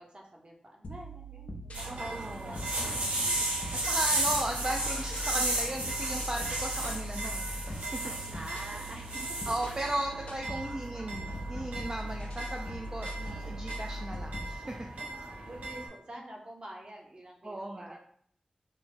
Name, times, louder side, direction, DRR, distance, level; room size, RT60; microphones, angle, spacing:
voice 1, 0.0-3.4 3.7-4.1 8.3-9.2 13.3-13.8 14.9-18.0, right 1 dB, 45° right, -1 dB, 0.8 m, -48 dB
sound 1, 0.8-14.6, equal, 70° left, 0.5 m, -41 dB
sound 2, 1.7-15.9, right 2 dB, 85° right, 0.7 m, -35 dB
voice 2, 1.9-2.6 3.8-8.1 9.5-14.9 17.4-18.0, right 1 dB, 30° right, 1 dB, 0.4 m, -36 dB
3.4 x 2.0 x 3.2 m, 0.63 s
cardioid pair, 50°, 2 cm